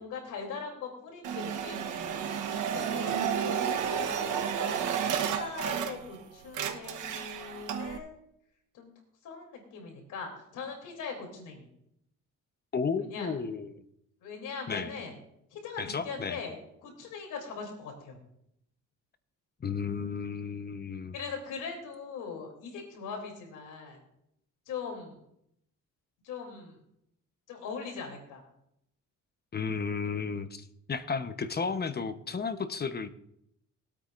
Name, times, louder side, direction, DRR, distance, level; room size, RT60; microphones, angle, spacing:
voice 1, 0.0-4.8 5.1-8.2 8.7-8.9 9.2-11.7 13.0-13.3 14.2-15.1 15.5-16.6 16.8-18.2 21.1-24.0 24.7-25.2 26.2-26.8 27.5-28.4, left 5 dB, 85° left, 2 dB, 3.3 m, -41 dB
sound 1, 1.2-6.2 6.5-8.0, right 8 dB, 80° right, 1.1 m, -32 dB
voice 2, 12.7-13.8 14.7-14.9 15.8-16.4 19.6-21.1 29.5-33.1, left 5 dB, 30° left, 10 dB, 1.0 m, -33 dB
21.0 x 8.5 x 2.6 m, 0.77 s
cardioid pair, 90°, 30 cm